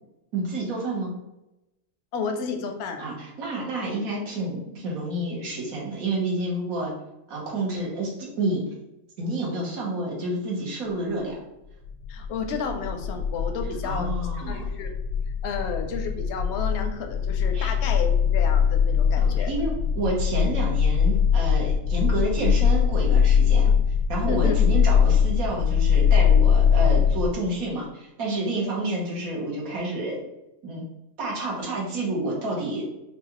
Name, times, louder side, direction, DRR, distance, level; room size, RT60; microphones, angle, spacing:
voice 1, 0.3-1.1 3.0-6.9 7.3-8.6 9.2-11.3 13.8-14.6 17.5-17.7 19.2-23.7 24.1-30.2 30.6-30.8 31.2-32.8, right 2 dB, 80° right, -3 dB, 1.5 m, -29 dB
voice 2, 2.1-3.0 12.1-14.1 14.5-14.9 15.4-19.5 24.3-24.6, left 5 dB, 65° left, 5 dB, 0.8 m, -31 dB
sound 1, 11.8-27.3, left 7 dB, 80° left, 1.2 m, -21 dB
4.8 x 2.4 x 2.9 m, 0.93 s
omnidirectional pair, 1.5 m